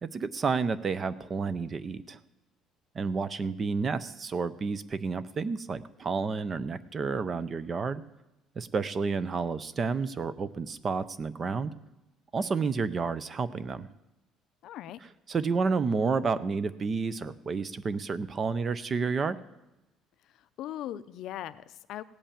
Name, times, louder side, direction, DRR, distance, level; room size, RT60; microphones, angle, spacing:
voice 1, 0.0-2.2 2.9-8.0 8.6-11.7 12.3-13.9 15.3-19.4, right 4 dB, 25° right, 16 dB, 0.4 m, -30 dB
voice 2, 14.6-15.0 20.6-22.0, left 12 dB, 55° left, 14 dB, 0.5 m, -39 dB
16.5 x 5.6 x 8.6 m, 0.97 s
cardioid pair, 170°, 0 cm